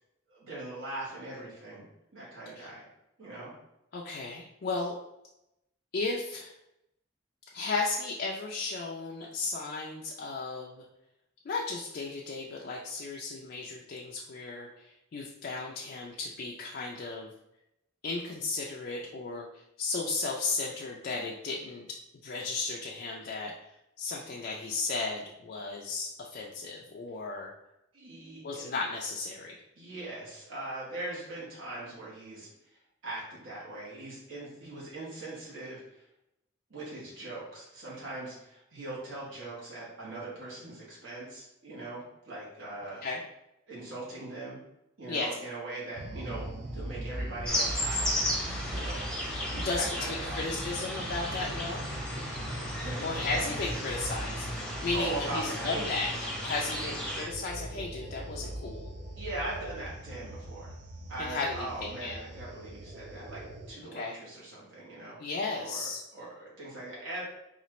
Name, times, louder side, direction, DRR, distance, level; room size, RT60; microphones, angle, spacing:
voice 1, 0.3-1.9 2.1-2.9 3.2-3.5 27.9-28.7 29.7-36.0 36.7-43.0 43.7-44.6 45.0-48.1 48.7-50.4 52.8-53.5 54.9-55.8 56.6-56.9 59.2-60.8 61.1-65.2 65.6-67.2, right 2 dB, 75° right, -7 dB, 1.3 m, -41 dB
voice 2, 3.9-4.9 5.9-6.5 7.5-10.8 11.5-17.3 18.0-21.8 22.2-23.7 24.0-27.5 28.4-29.6 43.0-43.2 45.1-45.3 49.6-51.9 53.0-58.9 61.2-62.2 63.9-64.2 65.2-66.0, left 3 dB, 50° left, -2 dB, 0.3 m, -35 dB
sound 1, 45.9-63.7, right 1 dB, 45° right, 0.5 m, -40 dB
sound 2, 47.4-57.2, left 1 dB, 5° left, 0.7 m, -35 dB
4.1 x 2.4 x 3.0 m, 0.86 s
head